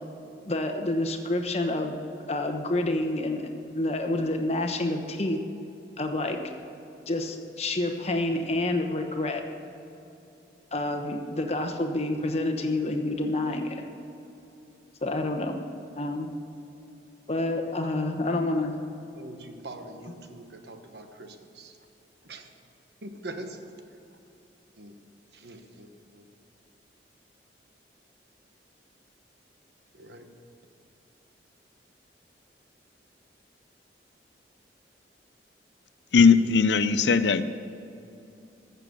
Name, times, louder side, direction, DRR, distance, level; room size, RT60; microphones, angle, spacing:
voice 1, 0.4-1.9 2.3-3.5 3.7-5.4 6.0-6.4 7.1-9.4 10.7-13.8 15.0-15.6 15.9-16.3 17.3-18.8, left 2 dB, 35° left, 5 dB, 1.1 m, -28 dB
voice 2, 19.2-21.7 22.3-22.4 23.0-23.6 24.8-24.9 25.4-25.9 30.0-30.3, right 2 dB, 70° right, 6 dB, 1.1 m, -42 dB
voice 3, 36.1-37.4, left 5 dB, 75° left, 13 dB, 0.5 m, -19 dB
15.0 x 6.8 x 6.8 m, 2.8 s
head